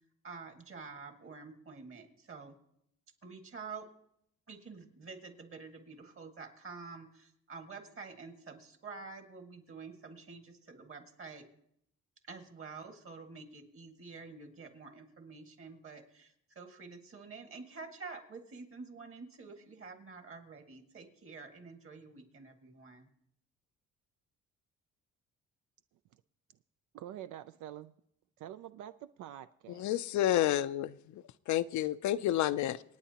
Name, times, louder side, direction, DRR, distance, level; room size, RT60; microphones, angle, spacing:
voice 1, 0.2-2.6 3.2-3.9 4.5-11.4 12.2-23.1, right 4 dB, 45° right, 5 dB, 1.9 m, -48 dB
voice 2, 26.9-27.9 28.4-29.9, right 12 dB, 75° right, 11 dB, 0.4 m, -46 dB
voice 3, 29.7-32.8, left 13 dB, 70° left, 14 dB, 0.5 m, -30 dB
27.0 x 9.1 x 2.9 m, 0.73 s
cardioid pair, 90°, 30 cm